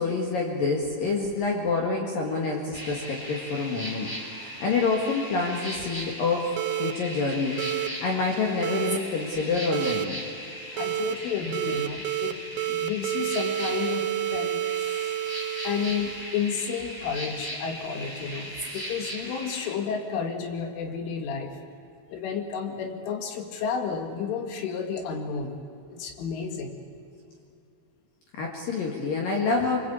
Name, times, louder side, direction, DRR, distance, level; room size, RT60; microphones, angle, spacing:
voice 1, 0.0-4.1 4.6-10.2 28.3-29.8, left 4 dB, 55° left, 0 dB, 3.0 m, -27 dB
sound 1, 2.7-19.8, equal, 10° left, 2.1 m, -38 dB
sound 2, 6.6-6.9 7.6-7.9 8.6-9.0 9.7-10.1 10.8-11.2 11.5-12.3 12.6-16.3, right 13 dB, 80° right, 2.9 m, -29 dB
voice 2, 10.7-12.4 12.7-15.1 15.6-21.6 22.1-25.6 25.9-26.7, left 6 dB, 80° left, 5 dB, 4.5 m, -31 dB
24.0 x 22.5 x 8.5 m, 2.6 s
omnidirectional pair, 5.7 m